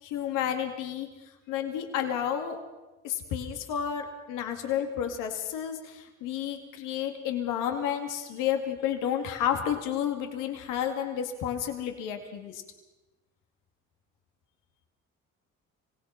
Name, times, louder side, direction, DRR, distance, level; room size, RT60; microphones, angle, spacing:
voice 1, 0.0-2.6 3.0-12.6, left 9 dB, 90° left, 5 dB, 2.4 m, -31 dB
25.5 x 18.0 x 5.8 m, 1.1 s
cardioid pair, 85°, 31 cm